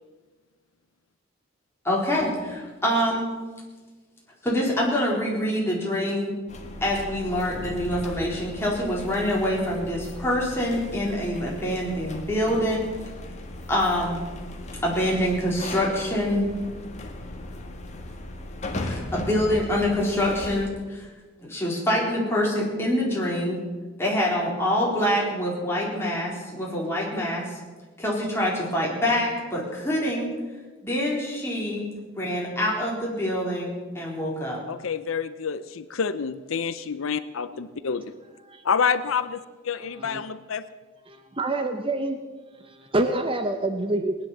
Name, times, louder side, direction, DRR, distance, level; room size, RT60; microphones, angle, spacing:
voice 1, 1.8-3.3 4.4-6.4 6.8-12.8 13.7-14.2 14.8-16.5 18.8-21.1 21.4-23.6 24.0-27.5 28.0-30.3 30.8-31.9 32.2-34.6, equal, 10° left, -4 dB, 4.1 m, -25 dB
sound 1, 6.5-20.7, left 1 dB, 35° left, 1.6 m, -37 dB
voice 2, 34.7-38.1 38.6-40.7, left 6 dB, 80° left, 13 dB, 0.6 m, -28 dB
voice 3, 41.1-42.2 42.6-44.1, right 2 dB, 25° right, 6 dB, 0.8 m, -27 dB
19.5 x 10.0 x 7.3 m, 1.3 s
head